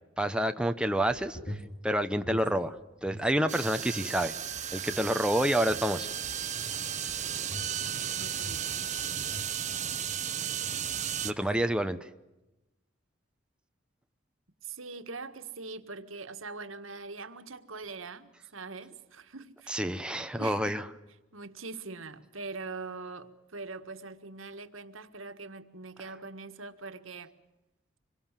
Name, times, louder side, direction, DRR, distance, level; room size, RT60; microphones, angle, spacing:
voice 1, 0.2-1.6 1.8-2.8 3.0-4.3 4.7-6.1 11.2-12.1 19.7-20.8, right 1 dB, 5° right, 0.9 m, -28 dB
sound 1, 1.0-3.3 3.6-10.3 10.7-11.1 11.3-11.7, left 1 dB, 40° left, 3.6 m, -46 dB
sound 2, 3.5-11.3, right 9 dB, 35° right, 1.2 m, -34 dB
voice 2, 8.2-8.7 14.6-19.8 20.4-20.8 21.3-27.3, right 3 dB, 90° right, 1.7 m, -42 dB
26.0 x 23.5 x 7.5 m
head